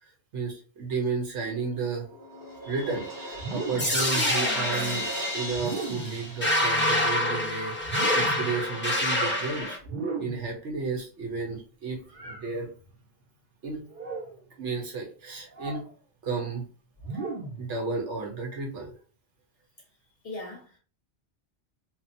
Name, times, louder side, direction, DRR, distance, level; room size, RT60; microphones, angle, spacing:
voice 1, 0.0-2.1 2.7-7.7 8.1-9.8 10.2-12.0 12.2-12.7 13.6-13.8 14.6-15.8 16.2-16.7 17.6-18.9, right 4 dB, 80° right, 0 dB, 1.2 m, -32 dB
Crash cymbal, 1.5-7.3, right 1 dB, 20° right, 0.8 m, -37 dB
sound 1, 3.4-4.1 5.5-6.2 7.8-8.5 9.8-10.5 12.1-12.5 13.9-14.4 15.5-15.9 17.0-17.7, right 4 dB, 50° right, 0.9 m, -35 dB
sound 2, 3.8-9.8, left 1 dB, 15° left, 0.5 m, -27 dB
voice 2, 20.2-20.8, left 2 dB, 60° left, 1 dB, 0.8 m, -42 dB
2.8 x 2.5 x 2.6 m, 0.39 s
omnidirectional pair, 1.2 m